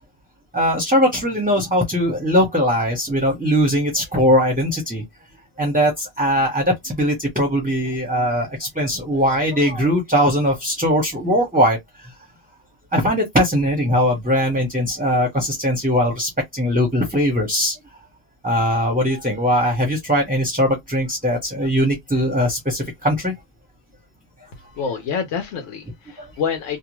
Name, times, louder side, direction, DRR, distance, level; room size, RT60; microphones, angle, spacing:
voice 1, 0.5-5.0 5.6-11.8 12.9-17.8 18.4-23.3 26.2-26.3, equal, 10° right, 0.7 m, -20 dB
voice 2, 24.8-26.8, left 6 dB, 85° left, 1.0 m, -27 dB
2.5 x 2.3 x 2.9 m
omnidirectional pair, 1.3 m